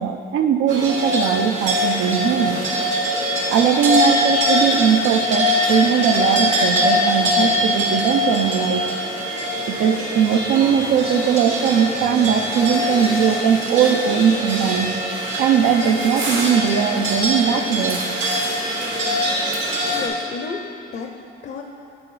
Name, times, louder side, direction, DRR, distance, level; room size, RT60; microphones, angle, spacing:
voice 1, 0.0-2.6 3.5-8.9 9.6-14.9 15.4-18.0, right 8 dB, 90° right, 7 dB, 0.5 m, -19 dB
sound 1, 0.7-20.1, equal, 70° right, 1.6 m, -22 dB
voice 2, 19.9-21.6, left 4 dB, 50° left, 3 dB, 0.5 m, -32 dB
8.4 x 4.9 x 3.1 m, 2.7 s
cardioid pair, 90°, 20 cm